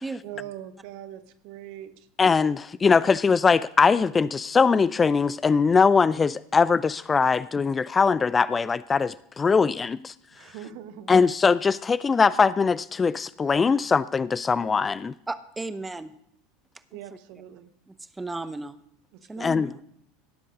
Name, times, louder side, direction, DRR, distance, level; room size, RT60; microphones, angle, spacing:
voice 1, 0.2-2.1 10.3-11.1 16.9-17.7 19.1-19.5, right 11 dB, 55° right, 10 dB, 1.1 m, -42 dB
voice 2, 2.2-10.1 11.1-15.1 19.4-19.7, left 5 dB, 20° left, 18 dB, 0.4 m, -21 dB
voice 3, 15.3-16.1 17.9-18.8 19.3-19.8, right 3 dB, 10° right, 13 dB, 0.9 m, -34 dB
17.5 x 7.6 x 5.2 m, 0.72 s
figure-of-eight pair, 75°, 0 cm